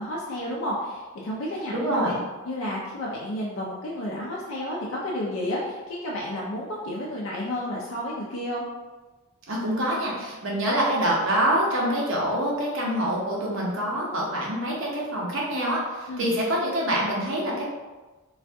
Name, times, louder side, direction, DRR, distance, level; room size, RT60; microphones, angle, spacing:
voice 1, 0.0-1.7 2.5-8.6 16.1-16.3, left 1 dB, 75° left, -4 dB, 0.5 m, -31 dB
voice 2, 1.7-2.2 9.5-17.6, right 1 dB, 70° right, -3 dB, 0.8 m, -25 dB
2.6 x 2.4 x 3.3 m, 1.2 s
head